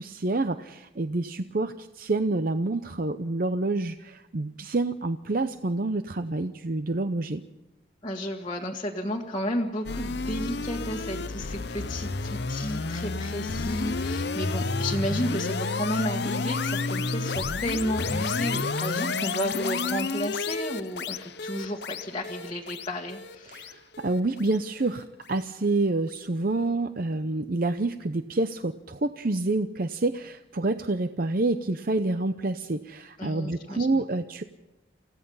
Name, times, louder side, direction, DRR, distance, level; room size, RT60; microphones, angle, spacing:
voice 1, 0.0-7.4 23.5-34.4, right 2 dB, 50° right, 9 dB, 0.7 m, -28 dB
voice 2, 8.0-23.8 33.2-33.9, equal, 25° left, -3 dB, 1.6 m, -32 dB
sound 1, 9.8-25.0, left 3 dB, 60° left, 0.8 m, -30 dB
29.0 x 16.0 x 5.6 m, 1.0 s
head